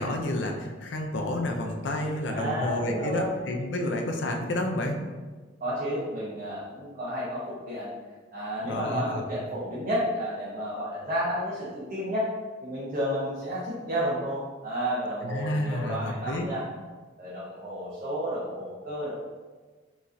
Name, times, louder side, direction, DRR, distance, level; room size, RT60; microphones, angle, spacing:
voice 1, 0.0-5.0 8.6-9.2 15.2-16.5, left 1 dB, 65° left, 3 dB, 0.5 m, -30 dB
voice 2, 2.3-3.4 5.6-7.9 8.3-12.3 12.6-16.6 17.2-19.1, equal, 45° right, -8 dB, 0.9 m, -31 dB
4.9 x 3.1 x 2.6 m, 1.4 s
head